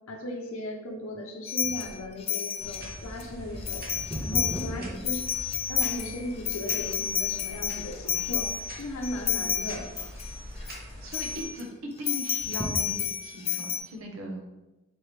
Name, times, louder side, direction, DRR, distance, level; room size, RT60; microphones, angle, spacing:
voice 1, 0.1-3.9 4.2-5.2 5.7-8.5 8.8-9.9, left 1 dB, 80° left, 0 dB, 0.6 m, -37 dB
sound 1, 1.5-3.2 3.6-4.7 5.0-10.8 11.1-11.6 12.1-13.8, left 9 dB, 30° left, 0.4 m, -31 dB
sound 2, 1.6-6.1 6.7-6.8 7.4-7.7 8.0-8.7 9.2-9.9 10.3-10.4 10.6-10.7 12.2-13.4 14.0-14.1, equal, 20° right, 0.9 m, -39 dB
sound 3, 2.6-11.4, equal, 50° right, 1.0 m, -43 dB
voice 2, 11.0-14.4, equal, 80° right, 1 dB, 0.9 m, -38 dB
4.3 x 3.2 x 3.2 m, 1.0 s
head